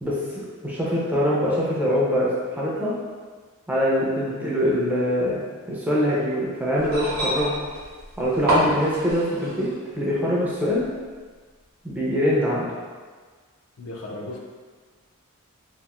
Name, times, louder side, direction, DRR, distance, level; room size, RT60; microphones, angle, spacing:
voice 1, 0.0-3.0 3.7-5.4 5.7-7.6 8.2-10.9 11.8-12.7, equal, 5° right, -6 dB, 0.4 m, -23 dB
sound 1, 6.8-9.8 10.8-10.9, right 1 dB, 45° right, 0.7 m, -26 dB
voice 2, 13.8-14.4, left 2 dB, 60° left, -1 dB, 0.4 m, -35 dB
2.9 x 2.4 x 2.3 m, 1.5 s
head